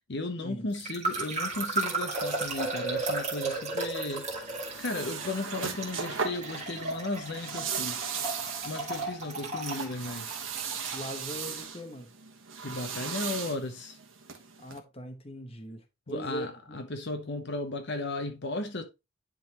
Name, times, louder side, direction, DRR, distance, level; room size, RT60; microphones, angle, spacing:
voice 1, 0.1-4.3 4.8-8.2 8.6-10.3 12.6-14.0 16.1-18.8, left 2 dB, 55° left, 0.9 m, -35 dB
sound 1, 0.7-11.6, right 3 dB, 30° right, 2.2 m, -34 dB
sound 2, 4.0-14.8, right 6 dB, 65° right, 1.4 m, -38 dB
voice 2, 10.9-12.1 14.6-16.8, equal, 25° left, 1.0 m, -40 dB
10.5 x 3.9 x 3.0 m
head